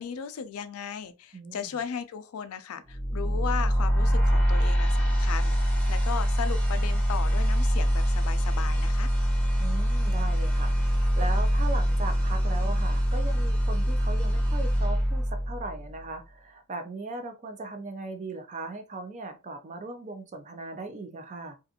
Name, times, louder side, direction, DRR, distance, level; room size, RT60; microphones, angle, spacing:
voice 1, 0.0-9.1, left 7 dB, 80° left, 0.4 m, -36 dB
voice 2, 1.3-1.8 9.6-21.6, right 3 dB, 35° right, 0.5 m, -38 dB
sound 1, 2.9-16.0, equal, 5° left, 0.8 m, -24 dB
2.4 x 2.4 x 2.7 m
head